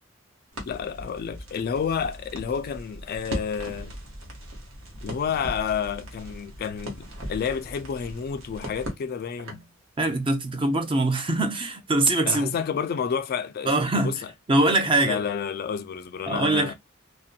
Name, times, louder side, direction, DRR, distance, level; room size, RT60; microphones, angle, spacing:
Crackle, 0.5-9.7, equal, 80° right, 1.0 m, -39 dB
voice 1, 0.6-3.9 5.0-9.6 12.3-14.2 15.0-16.7, left 7 dB, 50° left, 0.3 m, -30 dB
voice 2, 10.0-12.5 13.6-14.1 14.5-15.2 16.3-16.7, right 2 dB, 25° right, 0.5 m, -23 dB
2.6 x 2.2 x 2.3 m
head